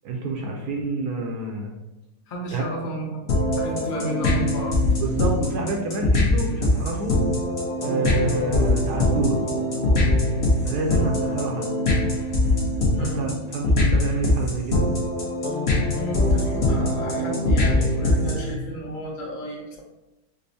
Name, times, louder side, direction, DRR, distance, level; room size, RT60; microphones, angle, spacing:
voice 1, 0.0-1.7 2.5-2.6 5.0-7.2 7.8-9.4 10.6-11.7 13.0-14.9, right 3 dB, 75° right, 0 dB, 1.0 m, -28 dB
voice 2, 2.3-4.8 13.0-13.2 16.0-19.8, equal, 80° left, -3 dB, 0.4 m, -32 dB
sound 1, 3.3-18.5, left 2 dB, 50° left, 0.8 m, -22 dB
5.2 x 2.0 x 2.6 m, 0.99 s
omnidirectional pair, 1.9 m